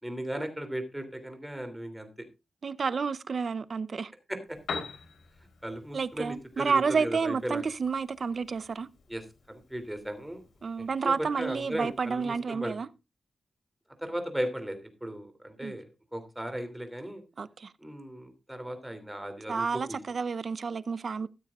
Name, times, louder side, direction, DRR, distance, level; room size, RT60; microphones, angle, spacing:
voice 1, 0.0-2.3 4.3-4.6 5.6-7.6 9.1-9.2 9.5-10.4 10.8-12.7 14.0-17.2 17.8-20.0, right 1 dB, 5° right, 2.9 m, -36 dB
voice 2, 2.6-4.1 5.9-8.9 10.6-12.9 15.6-15.7 17.4-17.7 19.5-21.3, right 5 dB, 45° right, 0.7 m, -30 dB
Piano, 4.4-12.4, left 5 dB, 90° left, 3.5 m, -46 dB
14.5 x 12.5 x 2.4 m
wide cardioid pair, 150°, 0 cm